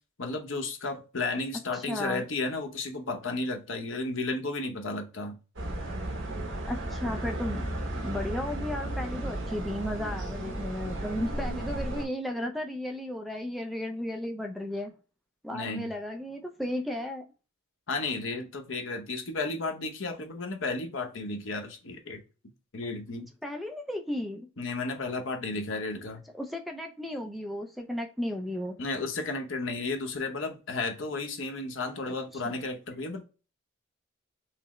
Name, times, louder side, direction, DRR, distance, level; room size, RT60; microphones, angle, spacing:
voice 1, 0.2-5.4 15.5-15.9 17.9-22.2 22.7-23.3 24.6-26.2 28.8-33.2, left 3 dB, 65° left, 0.8 m, -33 dB
voice 2, 1.7-2.3 6.7-7.7 7.9-14.9 15.4-17.2 23.4-24.5 26.4-28.8 32.1-32.2 32.4-32.6, left 1 dB, ahead, 0.4 m, -34 dB
sound 1, 5.6-12.0, right 1 dB, 65° right, 1.0 m, -34 dB
5.8 x 2.0 x 3.0 m
head